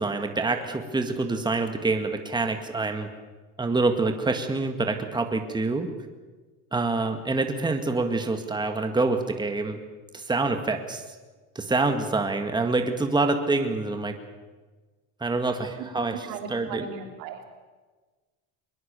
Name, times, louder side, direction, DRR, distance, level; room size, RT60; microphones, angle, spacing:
voice 1, 0.0-3.1 3.6-5.9 6.7-9.8 10.1-11.0 11.6-14.2 15.2-16.9, right 3 dB, 10° right, 6 dB, 1.9 m, -26 dB
voice 2, 16.2-17.4, right 6 dB, 85° right, 4 dB, 3.5 m, -37 dB
22.0 x 21.5 x 6.9 m, 1.3 s
cardioid pair, 115°, 35 cm